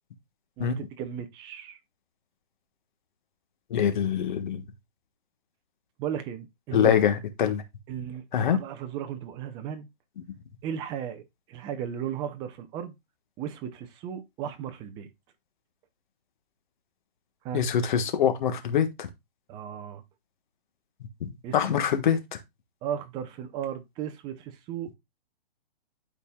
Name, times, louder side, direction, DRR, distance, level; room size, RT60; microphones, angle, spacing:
voice 1, 0.6-1.8 6.0-7.0 7.9-8.2 8.5-9.9 10.6-11.2 11.5-12.9 13.4-15.1 17.4-17.6 19.5-20.0 21.4-21.7 22.8-24.9, right 9 dB, 15° right, 0.6 m, -35 dB
voice 2, 3.7-4.6 6.7-7.6 8.3-8.6 17.5-19.1 21.2-22.4, left 8 dB, 55° left, 1.4 m, -24 dB
12.0 x 4.3 x 2.3 m
hypercardioid pair, 150°, 29 cm